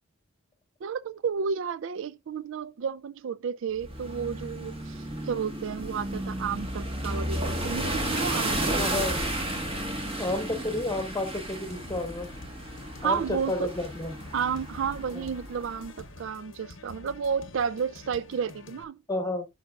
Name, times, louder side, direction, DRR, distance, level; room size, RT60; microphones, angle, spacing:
voice 1, 0.8-9.0 13.0-13.7 14.3-19.0, right 6 dB, 65° right, 0.4 m, -32 dB
sound 1, 3.8-15.9, right 1 dB, 25° right, 1.4 m, -33 dB
sound 2, 7.4-18.8, left 2 dB, 60° left, 0.8 m, -48 dB
voice 2, 8.8-9.1 10.2-12.3 13.0-14.1 15.1-15.3 19.1-19.5, left 2 dB, 15° left, 1.1 m, -31 dB
11.0 x 5.7 x 2.4 m
head